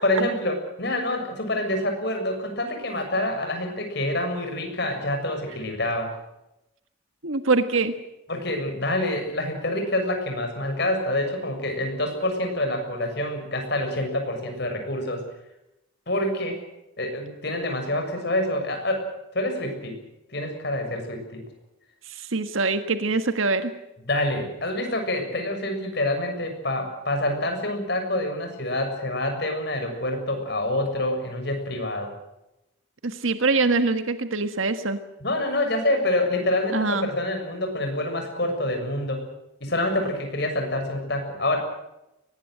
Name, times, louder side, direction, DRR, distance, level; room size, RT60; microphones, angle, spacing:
voice 1, 0.0-6.1 8.3-15.2 16.1-16.6 17.0-20.0 20.3-21.4 24.1-32.1 35.2-39.3 39.6-41.6, left 1 dB, 55° left, 5 dB, 6.9 m, -27 dB
voice 2, 7.2-7.9 22.0-23.7 33.0-35.0 36.7-37.1, right 3 dB, 80° right, 9 dB, 1.6 m, -24 dB
23.0 x 19.5 x 7.8 m, 0.90 s
head